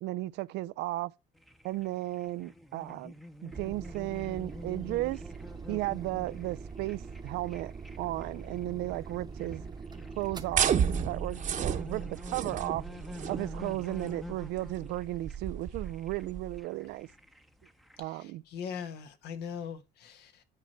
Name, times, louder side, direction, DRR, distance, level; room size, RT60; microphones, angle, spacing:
voice 1, 0.0-1.1 1.6-3.1 3.4-5.2 5.7-7.7 8.0-9.6 10.2-10.7 11.0-12.8 13.3-17.1 18.0-18.4, right 17 dB, 85° right, 0.5 m, -34 dB
sound 1, 1.3-18.0, left 1 dB, ahead, 0.7 m, -48 dB
sound 2, 3.5-11.5, right 5 dB, 25° right, 0.9 m, -43 dB
sound 3, 10.5-16.6, right 8 dB, 45° right, 1.0 m, -32 dB
voice 2, 18.0-20.4, left 7 dB, 75° left, 1.3 m, -41 dB
9.7 x 4.5 x 4.4 m
cardioid pair, 110°, 17 cm